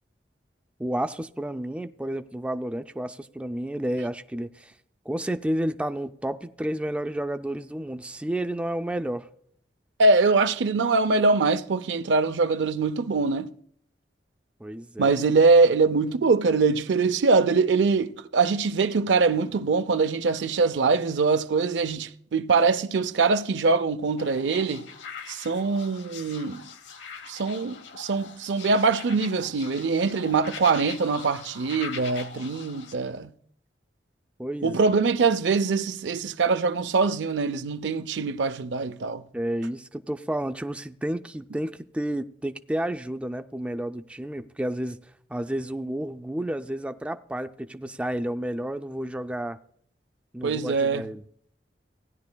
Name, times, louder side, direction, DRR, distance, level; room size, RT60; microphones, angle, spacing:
voice 1, 0.8-4.7 5.1-9.3 14.6-15.1 34.4-34.8 39.3-45.0 45.3-49.6 50.3-51.2, right 1 dB, 5° right, 0.3 m, -31 dB
voice 2, 10.0-13.5 15.0-24.9 25.3-26.6 27.3-33.3 34.6-39.2 50.4-51.1, right 4 dB, 85° right, 0.5 m, -23 dB
sound 1, 24.2-32.9, left 6 dB, 85° left, 1.0 m, -42 dB
16.5 x 10.5 x 2.2 m
head